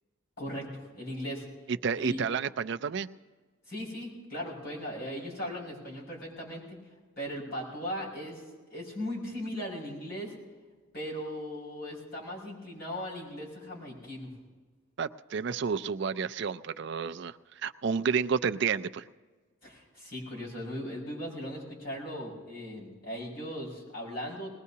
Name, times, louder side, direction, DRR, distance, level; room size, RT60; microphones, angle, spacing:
voice 1, 0.4-1.4 2.0-2.2 3.7-6.8 7.2-8.4 8.7-10.3 10.9-14.3 19.6-24.5, equal, 50° left, -5 dB, 5.5 m, -38 dB
voice 2, 1.8-3.1 15.0-19.1, right 6 dB, 55° right, 11 dB, 0.4 m, -30 dB
20.0 x 20.0 x 2.8 m, 1.4 s
head